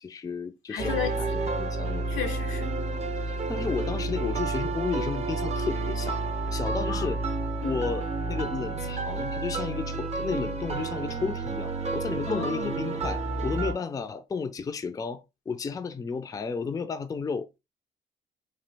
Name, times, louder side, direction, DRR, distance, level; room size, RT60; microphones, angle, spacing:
voice 1, 0.0-2.1 3.3-6.2 6.5-7.2 7.6-17.5, left 5 dB, 20° left, 0.3 m, -33 dB
voice 2, 0.7-1.4 2.1-2.7 6.7-7.1 12.3-12.8, left 8 dB, 85° left, 0.6 m, -34 dB
sound 1, 0.8-13.7, right 3 dB, 35° right, 0.5 m, -30 dB
3.0 x 2.2 x 3.3 m
cardioid pair, 90°, 20 cm